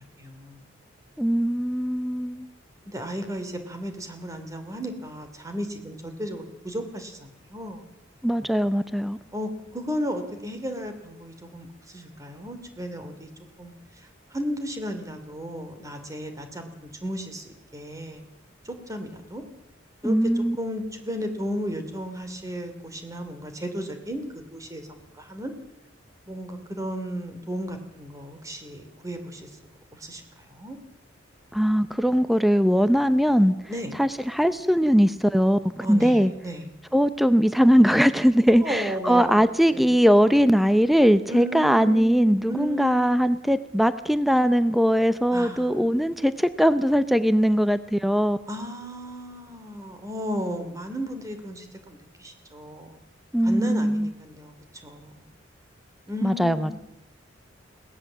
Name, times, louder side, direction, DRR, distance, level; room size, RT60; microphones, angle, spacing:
voice 1, 0.2-0.6 2.9-7.8 9.3-13.3 13.6-13.7 14.3-18.2 18.6-19.4 20.0-25.5 26.3-29.5 29.9-30.8 33.7-33.9 35.8-36.7 38.6-39.9 41.3-43.2 45.3-45.8 48.5-53.0 53.4-54.5 54.8-55.2 56.1-56.8, equal, 15° right, 6 dB, 2.7 m, -34 dB
voice 2, 1.2-2.5 8.2-9.2 20.0-20.6 31.5-33.5 34.0-36.3 36.9-48.4 53.3-54.1 56.2-56.7, equal, ahead, 12 dB, 0.7 m, -20 dB
21.5 x 17.5 x 7.4 m, 0.90 s
head